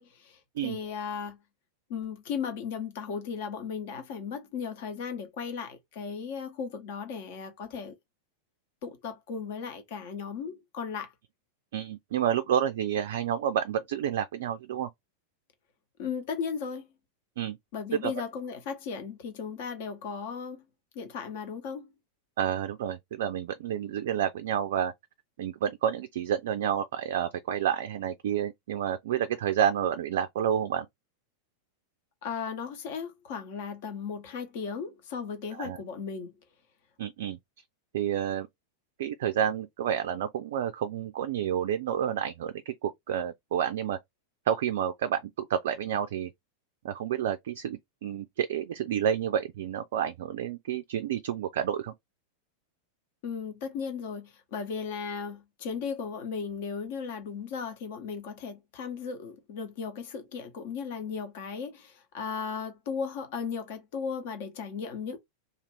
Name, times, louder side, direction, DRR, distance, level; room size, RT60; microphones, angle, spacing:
voice 1, 0.0-1.4 1.9-7.9 8.8-11.1 16.0-16.9 17.7-20.6 20.9-21.9 32.2-36.3 53.2-65.2, left 6 dB, 50° left, 0.9 m, -36 dB
voice 2, 11.7-14.9 17.4-17.6 18.0-18.1 22.4-24.9 25.4-30.9 35.6-35.8 37.0-37.4 37.9-38.5 39.0-44.0 44.5-46.3 46.8-51.9, right 9 dB, 55° right, 0.3 m, -29 dB
2.5 x 2.5 x 3.2 m
figure-of-eight pair, 90°, 0 cm